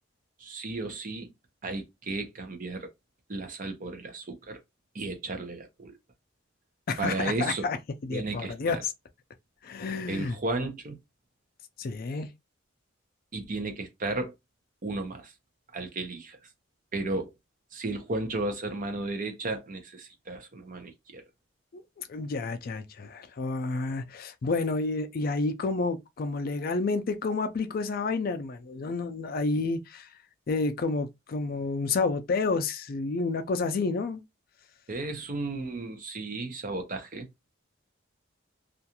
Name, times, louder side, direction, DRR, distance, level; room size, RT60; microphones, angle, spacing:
voice 1, 0.4-1.3 1.6-2.9 3.3-4.6 4.9-5.9 7.0-7.7 8.1-8.8 10.1-11.0 13.3-14.3 14.8-15.3 15.7-16.4 16.9-17.3 17.7-21.2 34.9-37.3, right 2 dB, 45° right, 0.6 m, -34 dB
voice 2, 6.9-7.8 8.0-8.9 9.6-10.4 11.8-12.3 21.7-30.1 30.5-34.2, left 3 dB, 50° left, 0.4 m, -30 dB
2.4 x 2.3 x 2.8 m
head